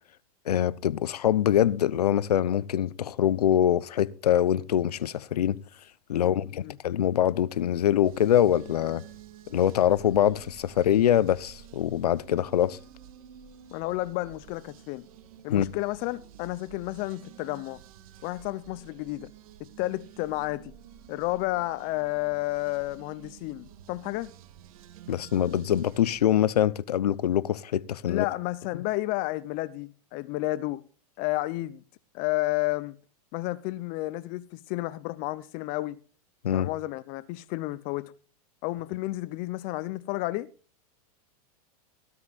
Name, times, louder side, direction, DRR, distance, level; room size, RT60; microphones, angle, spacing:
voice 1, 0.5-5.6 6.1-9.0 9.5-12.8 15.5-15.7 25.1-28.3 36.4-36.7, left 10 dB, 90° left, 0.8 m, -24 dB
voice 2, 6.2-6.8 13.7-15.0 15.4-17.8 18.2-19.3 19.6-20.7 21.1-24.3 28.1-30.8 31.2-31.8 32.1-33.0 33.3-36.0 36.5-38.1 38.6-40.5, left 19 dB, 45° left, 0.8 m, -31 dB
sound 1, 8.0-26.2, right 10 dB, 65° right, 2.2 m, -50 dB
18.0 x 13.5 x 2.5 m
hypercardioid pair, 120°, 20 cm